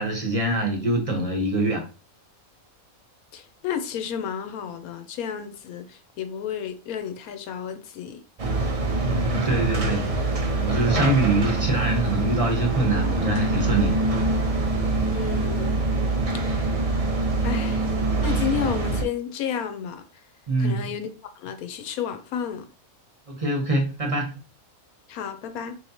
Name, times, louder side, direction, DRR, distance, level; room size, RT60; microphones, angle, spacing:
voice 1, 0.0-1.9 9.0-14.0 20.5-20.9 23.3-24.4, right 2 dB, 30° right, 0.8 m, -24 dB
voice 2, 3.3-8.2 15.1-15.8 16.5-16.7 17.4-17.9 18.2-20.0 20.6-21.1 21.4-22.7 25.1-25.8, left 8 dB, 80° left, 1.1 m, -31 dB
sound 1, 8.4-19.0, right 2 dB, 50° right, 0.4 m, -24 dB
4.4 x 3.0 x 2.8 m
omnidirectional pair, 1.5 m